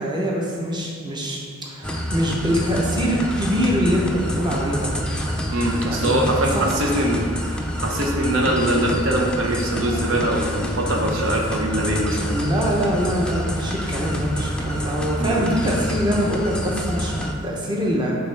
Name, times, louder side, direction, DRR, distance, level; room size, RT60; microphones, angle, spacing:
voice 1, 0.0-4.9 5.8-6.7 12.3-18.1, equal, 20° right, -2 dB, 0.8 m, -24 dB
sound 1, 1.8-17.3, equal, 5° left, 0.4 m, -27 dB
voice 2, 5.5-7.3 7.8-12.3 15.2-15.4, right 1 dB, 90° right, 1 dB, 0.8 m, -22 dB
8.0 x 3.7 x 3.4 m, 2.1 s
head